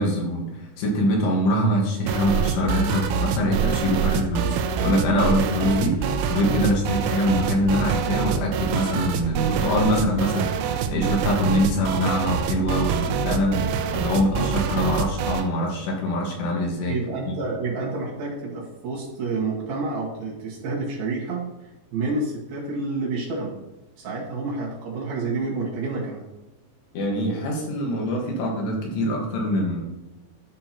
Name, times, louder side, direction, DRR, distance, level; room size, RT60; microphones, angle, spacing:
voice 1, 0.0-17.0 17.3-17.4 26.9-29.8, left 1 dB, 75° left, -1 dB, 3.8 m, -24 dB
sound 1, 2.1-15.5, right 6 dB, 85° right, 2.4 m, -25 dB
voice 2, 16.9-21.5 21.9-23.5 24.0-26.2, right 3 dB, 60° right, -4 dB, 3.5 m, -29 dB
12.5 x 6.2 x 3.0 m, 1.0 s
omnidirectional pair, 4.9 m